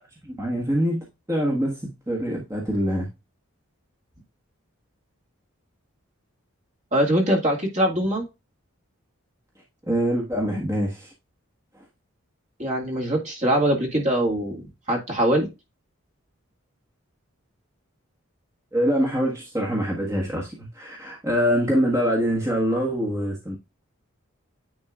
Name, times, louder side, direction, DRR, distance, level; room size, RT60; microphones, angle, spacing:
voice 1, 0.3-3.1 9.9-11.1 18.7-23.6, equal, 15° right, 1.4 m, -24 dB
voice 2, 6.9-8.2 12.6-14.6 14.9-15.5, right 1 dB, 35° right, 2.0 m, -22 dB
9.8 x 4.4 x 2.4 m
head